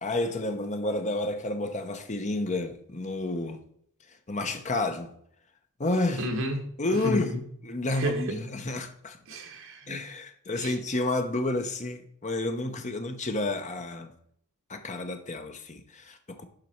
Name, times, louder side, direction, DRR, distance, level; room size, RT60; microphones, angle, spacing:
voice 1, 0.0-3.6 4.3-5.1 5.8-6.2 6.8-7.3 7.6-9.2 9.9-14.1 14.7-16.5, left 2 dB, 35° left, 1.0 m, -30 dB
voice 2, 6.2-7.4 8.0-8.4 9.3-10.0 10.6-10.7, right 1 dB, 65° right, 1.8 m, -32 dB
12.0 x 4.6 x 4.5 m
head